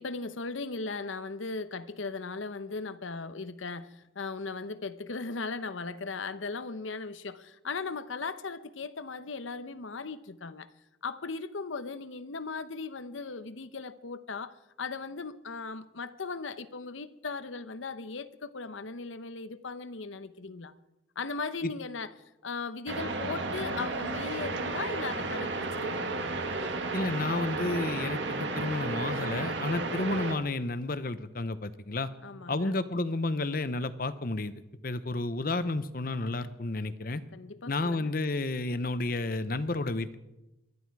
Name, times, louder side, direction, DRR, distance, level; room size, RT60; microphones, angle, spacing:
voice 1, 0.0-10.7 11.0-20.7 21.2-22.1 22.4-26.4 32.2-32.7 37.3-38.1, left 4 dB, 85° left, 0.9 m, -38 dB
sound 1, 22.9-30.3, right 3 dB, 70° right, 1.8 m, -33 dB
voice 2, 26.9-32.1 32.5-37.2 37.7-40.1, left 2 dB, 45° left, 0.9 m, -31 dB
22.0 x 13.5 x 4.8 m
head